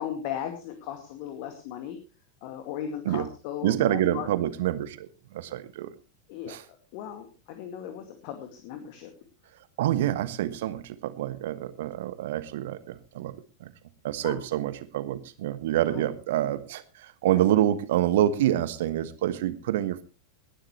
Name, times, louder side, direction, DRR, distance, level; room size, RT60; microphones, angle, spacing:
voice 1, 0.0-2.0 2.4-4.3 6.3-6.6 6.9-9.1 14.2-14.4 15.9-16.1 17.3-17.6, left 9 dB, 45° left, 6 dB, 2.2 m, -37 dB
voice 2, 3.6-5.1 5.3-5.9 6.5-6.6 9.8-13.3 13.6-13.7 14.0-20.0, right 12 dB, 55° right, 14 dB, 1.3 m, -27 dB
20.0 x 12.0 x 3.2 m, 0.33 s
figure-of-eight pair, 90°, 0 cm